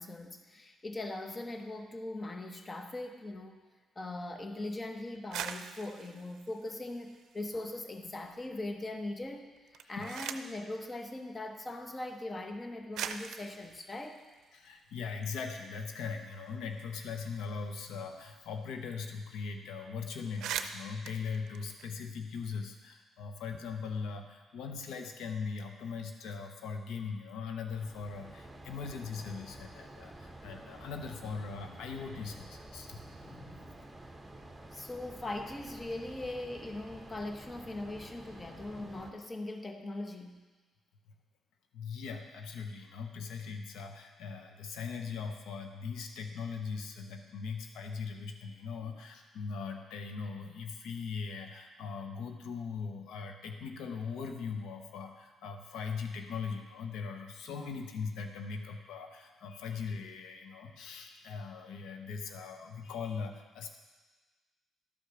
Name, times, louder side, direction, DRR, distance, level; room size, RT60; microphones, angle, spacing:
voice 1, 0.0-3.6 4.0-14.2 33.2-33.6 34.7-40.4 43.8-43.9 48.8-48.9, left 2 dB, 25° left, 5 dB, 0.9 m, -40 dB
sound 1, 5.1-7.7 8.1-8.8 9.6-10.7 11.7-11.8 12.5-12.6 12.9-15.3 15.6-15.7 16.0-18.6 18.8-19.0 19.3-19.5 19.9-20.0 20.2-22.4, right 8 dB, 80° right, 0.5 m, -43 dB
voice 2, 14.5-33.1 38.8-38.9 41.7-63.7, left 5 dB, 85° left, 5 dB, 0.9 m, -40 dB
sound 2, 27.7-39.1, right 1 dB, 10° right, 1.1 m, -50 dB
12.0 x 5.0 x 6.0 m, 1.3 s
cardioid pair, 90°, 0 cm